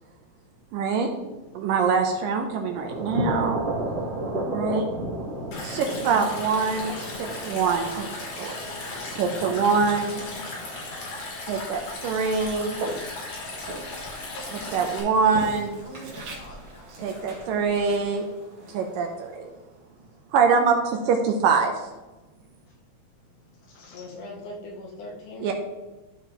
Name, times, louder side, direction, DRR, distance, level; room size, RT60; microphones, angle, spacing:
voice 1, 0.7-1.1 1.5-3.6 4.5-4.8 5.6-8.1 8.4-8.6 9.2-10.2 11.5-12.8 14.7-15.8 17.0-18.3 18.7-19.5 20.3-21.7 25.4-25.5, right 5 dB, 75° right, 4 dB, 2.2 m, -24 dB
sound 1, 2.8-18.0, right 1 dB, 35° right, 1.7 m, -35 dB
Stream, 5.5-15.0, left 2 dB, 50° left, 2.9 m, -37 dB
Walk footsteps, 12.7-19.9, right 2 dB, 60° right, 2.8 m, -41 dB
voice 2, 14.3-17.3 23.7-24.2, equal, 85° left, -1 dB, 3.6 m, -47 dB
voice 3, 23.9-25.5, left 2 dB, 70° left, 0 dB, 2.0 m, -39 dB
13.0 x 4.7 x 2.9 m, 1.1 s
omnidirectional pair, 4.4 m